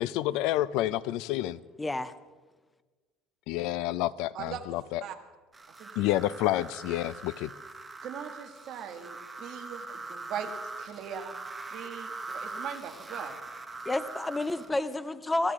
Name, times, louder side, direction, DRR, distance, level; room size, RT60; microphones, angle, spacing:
voice 1, 0.0-1.6 3.5-5.0 6.0-7.5, left 15 dB, 65° left, 18 dB, 0.4 m, -29 dB
voice 2, 1.8-2.1 13.8-15.5, left 2 dB, 10° left, 13 dB, 0.5 m, -30 dB
sound 1, 5.5-14.7, right 3 dB, 10° right, 1.1 m, -42 dB
voice 3, 8.0-10.5 10.8-11.3 11.7-13.4, right 8 dB, 45° right, 4 dB, 1.9 m, -40 dB
25.5 x 15.0 x 3.6 m, 1.3 s
cardioid pair, 175°, 0 cm